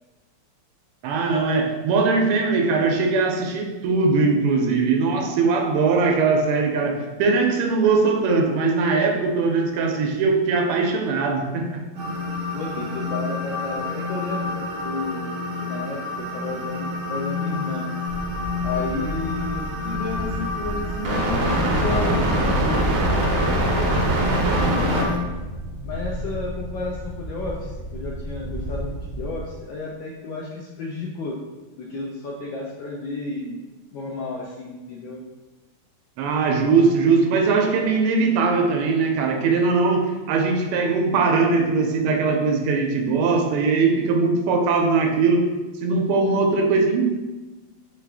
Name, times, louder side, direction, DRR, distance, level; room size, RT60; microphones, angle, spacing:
voice 1, 1.0-12.1 36.2-45.5 45.8-47.1, right 4 dB, 85° right, 2 dB, 1.5 m, -20 dB
sound 1, 12.0-25.2, equal, 65° right, 1.2 m, -26 dB
voice 2, 12.5-15.3 15.6-17.8 18.6-25.3 25.8-31.4 31.8-33.6 33.9-35.2, left 3 dB, 75° left, -2 dB, 1.1 m, -32 dB
sound 2, 18.0-29.4, right 1 dB, 60° left, 0.7 m, -30 dB
4.8 x 2.4 x 3.4 m, 1.2 s
omnidirectional pair, 2.4 m